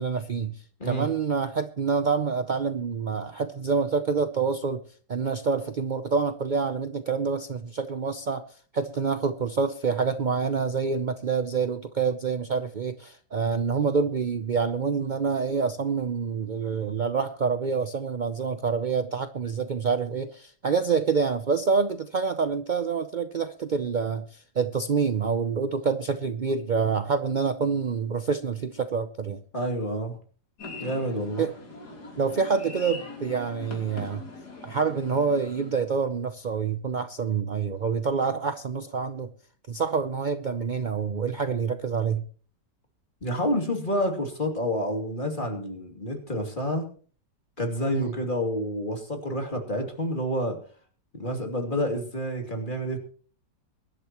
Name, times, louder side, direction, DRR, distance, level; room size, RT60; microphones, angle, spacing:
voice 1, 0.0-4.8 5.1-8.4 8.7-29.4 31.4-31.5 32.2-34.2 34.6-39.3 39.7-42.2 47.9-48.1, right 5 dB, 65° right, 9 dB, 0.4 m, -27 dB
voice 2, 29.5-30.2 30.8-31.4 43.2-46.8 47.6-50.6 51.1-53.0, equal, 30° left, 3 dB, 2.9 m, -28 dB
sound 1, 30.6-35.7, left 3 dB, 70° left, 3.8 m, -41 dB
23.0 x 12.0 x 3.0 m, 0.42 s
omnidirectional pair, 1.8 m